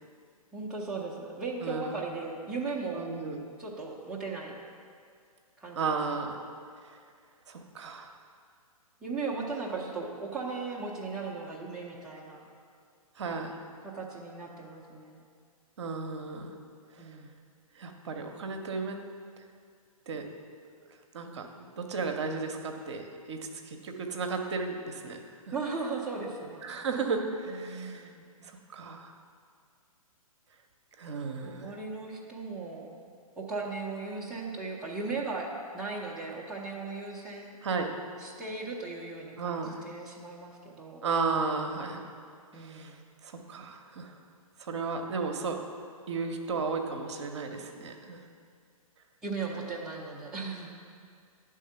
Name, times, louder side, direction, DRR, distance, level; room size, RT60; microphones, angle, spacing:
voice 1, 0.5-3.1 3.6-4.6 5.6-6.0 9.0-12.4 13.8-15.2 17.0-17.3 25.5-26.6 27.5-28.3 31.4-32.9 33.4-37.6 38.2-41.1 42.5-43.0 49.2-50.7, right 4 dB, 5° right, -5 dB, 0.5 m, -37 dB
voice 2, 1.6-1.9 2.9-3.4 5.7-6.4 7.5-8.1 13.2-13.6 15.8-16.5 17.8-19.0 20.1-20.3 21.1-25.2 26.6-28.1 28.4-29.1 31.0-31.8 37.6-37.9 39.4-39.8 41.0-42.0 42.5-42.9 43.2-44.1 44.6-45.6 46.1-48.2, right 4 dB, 50° right, 4 dB, 0.7 m, -34 dB
9.8 x 3.7 x 5.6 m, 2.2 s
figure-of-eight pair, 120°, 19 cm